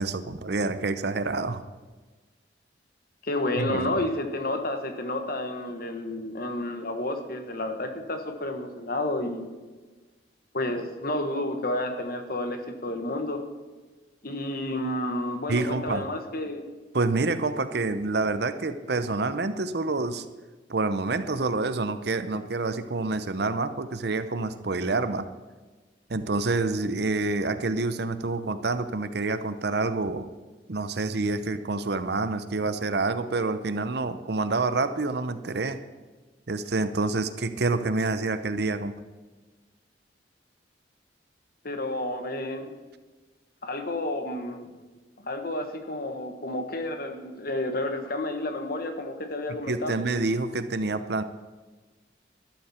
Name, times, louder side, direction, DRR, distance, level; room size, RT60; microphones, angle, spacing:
voice 1, 0.0-1.6 3.6-3.9 15.5-16.0 16.9-20.2 20.7-25.3 26.1-30.3 30.7-35.8 36.5-38.9 49.7-51.2, right 3 dB, 60° right, 11 dB, 0.7 m, -27 dB
voice 2, 3.2-9.5 10.5-13.4 14.2-16.6 41.6-42.7 43.6-44.7 45.2-50.0, left 1 dB, 55° left, 6 dB, 1.5 m, -30 dB
13.0 x 12.0 x 4.4 m, 1.3 s
head